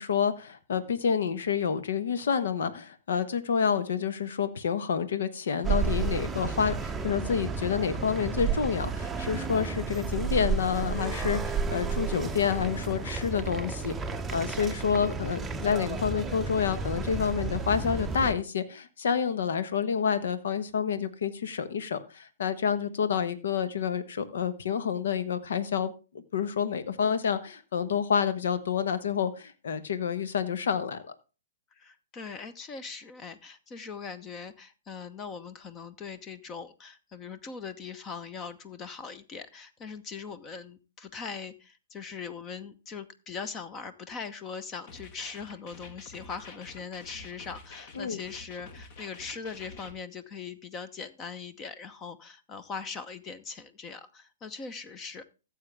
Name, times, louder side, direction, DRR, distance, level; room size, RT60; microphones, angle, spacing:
voice 1, 0.0-13.9 14.3-31.1 48.0-48.2, left 7 dB, 65° left, 13 dB, 1.1 m, -28 dB
sound 1, 5.6-18.3, right 4 dB, 10° right, 0.7 m, -32 dB
voice 2, 31.8-55.2, left 5 dB, 25° left, 14 dB, 0.9 m, -41 dB
sound 2, 44.9-49.9, left 3 dB, 45° left, 1.9 m, -48 dB
14.5 x 7.6 x 3.4 m, 0.33 s
figure-of-eight pair, 120°, 0 cm